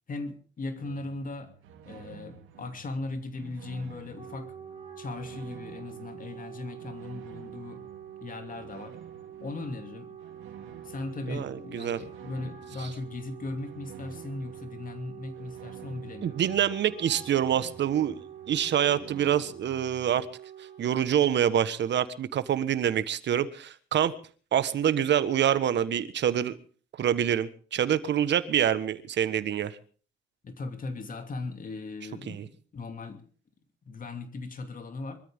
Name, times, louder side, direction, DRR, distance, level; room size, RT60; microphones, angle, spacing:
voice 1, 0.1-1.5 1.9-4.5 5.0-7.9 8.2-9.0 9.4-10.2 10.8-16.4 30.4-33.2 33.9-35.2, left 3 dB, 45° left, 7 dB, 2.7 m, -38 dB
sound 1, 0.7-20.2, right 7 dB, 90° right, 2.9 m, -51 dB
Wind instrument woodwind instrument, 3.9-21.4, right 9 dB, 35° right, 4.1 m, -46 dB
voice 2, 11.3-12.0 12.8-12.9 16.2-18.2 18.5-20.2 20.8-24.1 24.5-26.6 27.0-29.8 32.3-32.5, right 9 dB, 65° right, 14 dB, 1.4 m, -26 dB
24.0 x 14.0 x 3.7 m, 0.41 s
cardioid pair, 90°, 20 cm